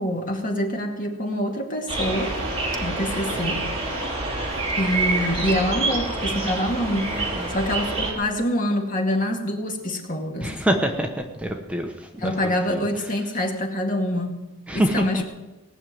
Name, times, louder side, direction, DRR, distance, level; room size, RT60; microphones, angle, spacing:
voice 1, 0.0-2.4 2.8-3.7 4.8-10.5 12.2-14.4 14.7-15.2, left 1 dB, 40° left, 2 dB, 2.1 m, -26 dB
sound 1, 1.9-8.1, right 2 dB, 30° right, 3.4 m, -27 dB
voice 2, 7.1-7.5 10.4-11.1 11.4-11.9 12.2-12.3 12.7-12.8 14.7-15.2, right 1 dB, 5° right, 3 dB, 1.0 m, -25 dB
19.0 x 6.6 x 9.0 m, 1.1 s
head